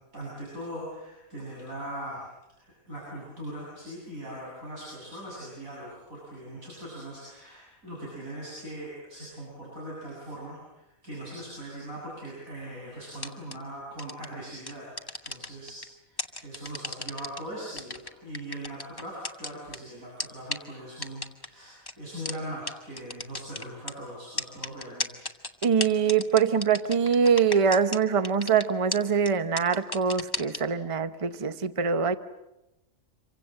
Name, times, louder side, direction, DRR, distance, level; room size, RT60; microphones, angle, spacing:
voice 1, 0.1-2.3 2.6-15.8 16.1-25.3, right 1 dB, 85° right, -5 dB, 8.7 m, -40 dB
sound 1, 13.2-13.5 14.0-14.3 14.7-15.8 16.2-17.4 17.8-19.8 20.2-20.3 20.5-20.6 21.0-21.5 21.9-22.0 22.3-22.4 22.7-22.8 23.0-23.9 24.4-28.0 28.2-28.6 28.9-29.0 29.3-29.4 29.6-30.6, left 2 dB, 20° left, 1.3 m, -33 dB
voice 2, 25.6-32.1, right 6 dB, 25° right, 11 dB, 0.9 m, -24 dB
27.0 x 24.5 x 7.6 m, 0.95 s
omnidirectional pair, 1.4 m